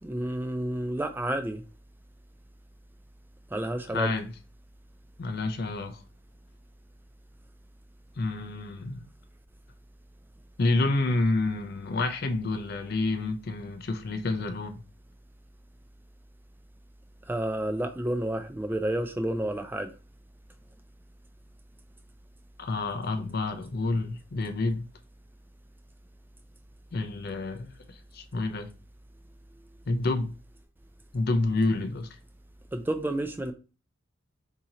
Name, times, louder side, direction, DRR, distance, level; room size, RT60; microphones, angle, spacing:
voice 1, 0.0-1.6 3.5-4.1 17.3-19.9 32.7-33.5, right 1 dB, 10° right, 0.3 m, -30 dB
voice 2, 3.9-4.3 5.2-6.0 8.2-9.1 10.6-14.8 22.6-24.9 26.9-28.7 29.9-30.3 31.1-32.1, left 2 dB, 50° left, 0.5 m, -29 dB
2.9 x 2.8 x 3.7 m
head